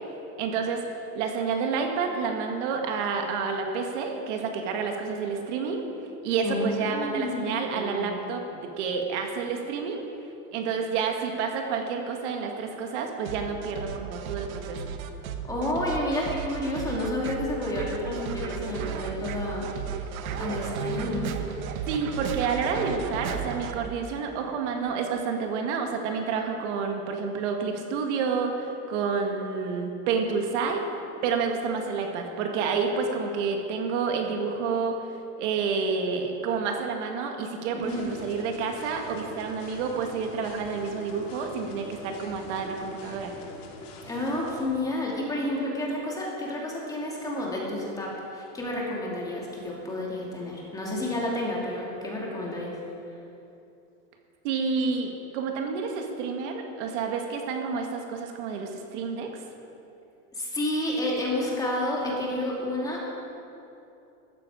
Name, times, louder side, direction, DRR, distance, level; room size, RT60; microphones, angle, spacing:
voice 1, 0.4-0.8 1.2-5.8 6.2-10.0 10.5-14.8 21.9-30.8 31.2-35.0 35.4-43.3 54.4-59.4, right 5 dB, 55° right, 3 dB, 1.8 m, -29 dB
voice 2, 6.4-8.2 15.5-19.7 20.4-21.3 37.8-38.0 44.0-52.8 60.3-63.1, left 1 dB, 10° left, -4 dB, 2.6 m, -30 dB
sound 1, 13.3-23.7, right 7 dB, 85° right, 1.3 m, -34 dB
sound 2, 37.8-44.6, left 3 dB, 65° left, 2.6 m, -44 dB
15.5 x 13.5 x 5.0 m, 2.8 s
supercardioid pair, 155°, 41 cm